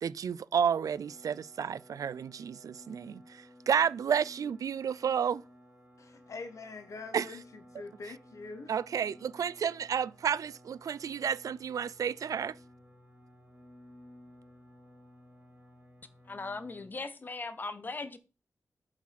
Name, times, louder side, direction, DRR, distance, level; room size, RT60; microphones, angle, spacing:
voice 1, 0.0-5.4 7.1-7.4 8.7-12.6, right 7 dB, 80° right, 0.4 m, -31 dB
sound 1, 0.5-16.9, equal, 30° right, 3.1 m, -56 dB
voice 2, 6.0-8.7, left 4 dB, 65° left, 1.1 m, -44 dB
voice 3, 16.3-18.2, left 3 dB, 35° left, 0.8 m, -39 dB
7.2 x 4.9 x 5.8 m
wide cardioid pair, 155°, 6 cm